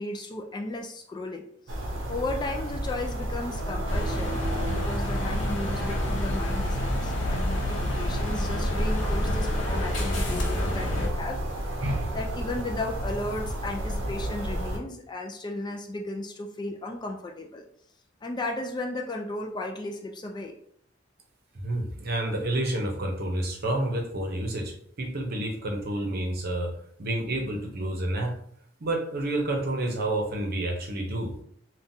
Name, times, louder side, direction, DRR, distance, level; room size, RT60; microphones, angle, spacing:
voice 1, 0.0-1.4 2.1-11.4 11.7-17.6 18.2-20.5, left 2 dB, 25° left, 2 dB, 0.3 m, -35 dB
sound 1, 1.7-14.8, equal, 90° right, 0.6 m, -31 dB
sound 2, 3.9-11.1, left 1 dB, 70° left, 0.7 m, -29 dB
voice 2, 21.5-26.7 27.0-28.4 28.8-31.3, right 1 dB, 55° right, 1 dB, 0.7 m, -29 dB
3.7 x 2.2 x 2.7 m, 0.66 s
head